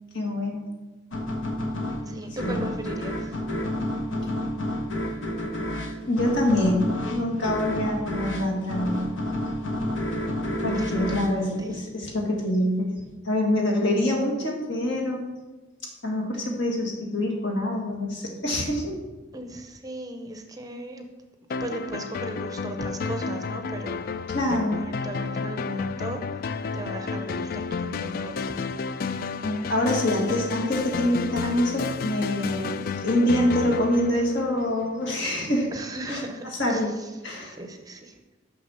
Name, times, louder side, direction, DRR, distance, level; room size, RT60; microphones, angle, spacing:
voice 1, 0.1-0.7 2.4-2.6 6.1-9.0 10.6-12.9 13.2-15.2 16.0-19.0 24.3-24.8 29.4-35.7 36.1-36.2 36.6-36.9 37.2-37.5, left 1 dB, 65° left, 0 dB, 1.8 m, -25 dB
sound 1, 1.1-12.4, left 1 dB, 80° left, 1.0 m, -30 dB
voice 2, 2.0-3.4 10.8-11.8 19.3-21.1 21.6-24.2 24.7-28.6 35.7-37.1 37.4-38.4, right 1 dB, 20° right, 5 dB, 0.6 m, -37 dB
sound 2, 21.5-35.0, left 5 dB, 50° left, 0.3 m, -31 dB
6.4 x 6.0 x 5.6 m, 1.2 s
head